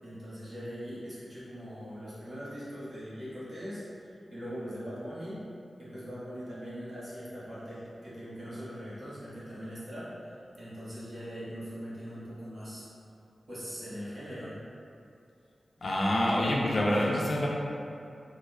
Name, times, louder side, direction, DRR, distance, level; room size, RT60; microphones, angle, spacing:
voice 1, 0.0-5.4 5.8-12.9 13.5-14.5, equal, 65° right, -11 dB, 1.3 m, -41 dB
voice 2, 15.8-17.5, left 1 dB, 60° left, -3 dB, 0.6 m, -26 dB
3.4 x 3.3 x 2.2 m, 2.5 s
cardioid pair, 50°, 0 cm